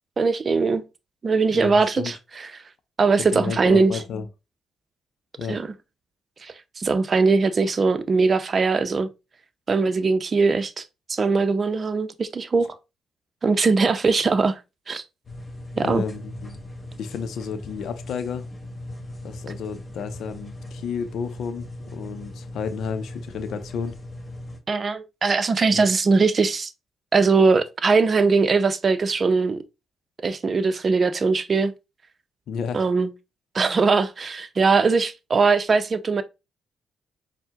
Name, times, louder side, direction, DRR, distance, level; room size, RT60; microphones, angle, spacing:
voice 1, 0.2-0.8 1.2-2.1 3.0-3.9 5.5-5.6 6.4-9.1 9.7-10.8 11.1-12.8 13.4-14.6 14.9-15.0 15.8-16.0 24.7-26.7 27.1-29.6 30.2-31.7 32.7-33.1 33.5-36.2, right 4 dB, 45° right, 0.6 m, -20 dB
voice 2, 1.5-2.1 3.3-4.3 5.4-5.6 15.8-16.6 17.0-18.5 19.2-24.0 25.7-25.8 32.5-32.9, left 6 dB, 70° left, 0.5 m, -32 dB
sound 1, 15.2-24.6, left 1 dB, 25° left, 1.5 m, -39 dB
4.4 x 2.1 x 3.6 m
supercardioid pair, 55°, 0 cm